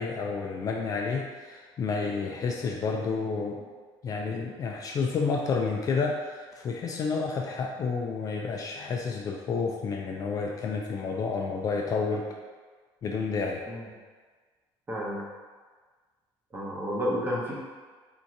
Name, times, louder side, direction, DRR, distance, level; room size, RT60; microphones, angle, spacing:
voice 1, 0.0-3.7 4.0-12.3 13.0-13.6, left 4 dB, 35° left, 1 dB, 0.4 m, -30 dB
voice 2, 14.9-15.2 16.5-17.5, equal, 20° right, -4 dB, 0.9 m, -31 dB
3.7 x 2.7 x 4.5 m, 1.5 s
cardioid pair, 150°, 10 cm